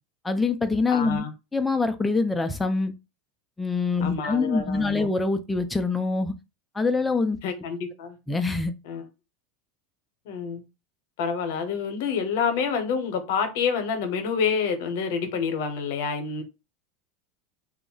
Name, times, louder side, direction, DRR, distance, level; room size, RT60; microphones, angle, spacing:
voice 1, 0.2-1.2 1.5-2.9 3.6-6.3 6.7-7.4 8.3-8.7, left 3 dB, 10° left, 0.4 m, -24 dB
voice 2, 0.9-1.3 4.0-5.1 7.4-8.2 8.8-9.0 10.3-10.6 11.2-16.4, left 6 dB, 70° left, 0.8 m, -28 dB
2.3 x 2.0 x 3.8 m
supercardioid pair, 140°, 0 cm